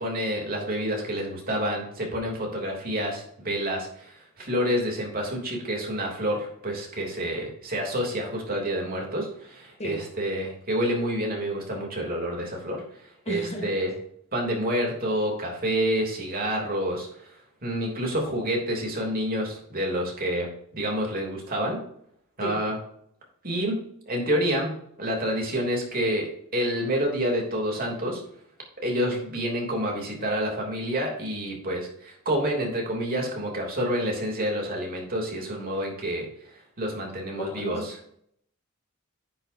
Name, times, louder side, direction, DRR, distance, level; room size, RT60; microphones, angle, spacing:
voice 1, 0.0-12.8 13.3-13.9 14.3-17.4 17.6-21.8 22.4-22.8 23.4-23.8 24.1-28.2 28.8-37.9, equal, 40° right, 0 dB, 3.2 m, -28 dB
voice 2, 13.3-13.8 22.4-22.6 37.4-37.9, equal, 30° left, 1 dB, 1.8 m, -33 dB
10.0 x 8.9 x 2.8 m, 0.68 s
head